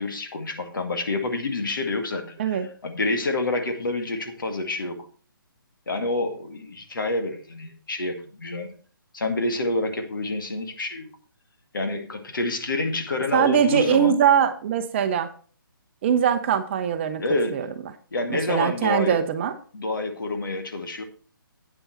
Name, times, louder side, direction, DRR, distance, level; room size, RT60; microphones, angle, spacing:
voice 1, 0.0-5.1 5.9-8.7 9.1-11.1 11.7-14.1 17.2-17.6 18.1-19.2 19.7-21.0, left 2 dB, 65° left, 5 dB, 2.1 m, -28 dB
voice 2, 13.3-15.3 16.0-17.2 17.5-17.7 18.3-19.5, right 8 dB, 30° right, 10 dB, 0.8 m, -22 dB
9.0 x 7.8 x 4.1 m, 0.42 s
figure-of-eight pair, 145°, 12 cm